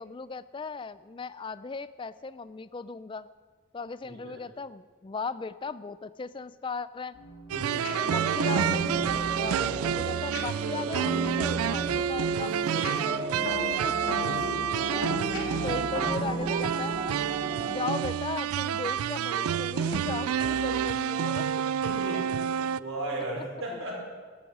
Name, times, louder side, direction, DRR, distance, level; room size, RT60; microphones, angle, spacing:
voice 1, 0.0-3.3 3.7-7.2 8.0-8.9 9.4-12.5 13.8-14.2 14.9-15.0 15.6-17.0 17.7-21.5 23.4-23.5 23.7-23.8, left 4 dB, 25° left, 15 dB, 0.3 m, -37 dB
voice 2, 4.0-4.4 7.5-7.9 9.5-9.8 12.5-13.4 14.2-15.4 20.4-20.5 21.8-22.3 22.8-24.0, right 1 dB, 70° right, -3 dB, 4.3 m, -37 dB
sound 1, 7.1-17.8, right 1 dB, 70° left, 2.6 m, -36 dB
sound 2, 7.5-22.8, right 8 dB, 85° right, 0.4 m, -29 dB
sound 3, 7.9-18.1, right 3 dB, 25° right, 0.8 m, -36 dB
13.5 x 12.5 x 6.1 m, 1.5 s
head